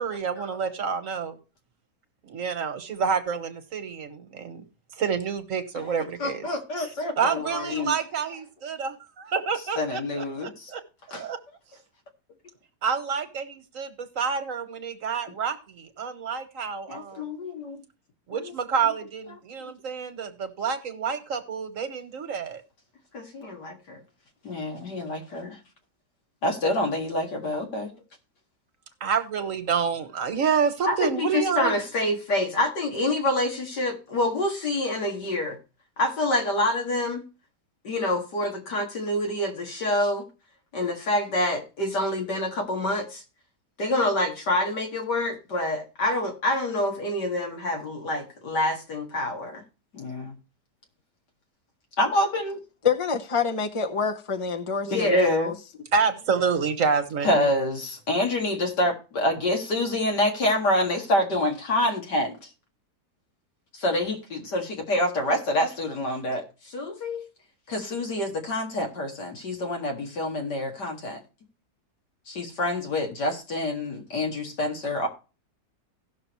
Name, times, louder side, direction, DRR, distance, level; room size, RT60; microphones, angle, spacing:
voice 1, 0.0-1.4 2.2-4.6 5.0-6.5 7.2-10.8 11.1-11.4 12.8-17.2 18.3-22.6 29.0-31.7 55.9-57.5, right 6 dB, 55° right, 1.5 m, -28 dB
voice 2, 6.2-8.0 9.8-10.7 11.1-11.2 16.9-17.8 18.3-18.5 23.1-24.0 24.4-25.6 26.4-27.9 30.9-35.6 36.0-37.2 37.8-40.2 40.7-43.2 43.8-49.6 49.9-50.3 52.0-52.6 54.8-55.6 57.2-62.3 63.7-67.2 67.7-71.2 72.3-75.1, left 1 dB, 90° left, 2.6 m, -27 dB
voice 3, 52.8-55.5, left 6 dB, 35° left, 0.5 m, -27 dB
17.0 x 6.4 x 3.0 m
omnidirectional pair, 1.8 m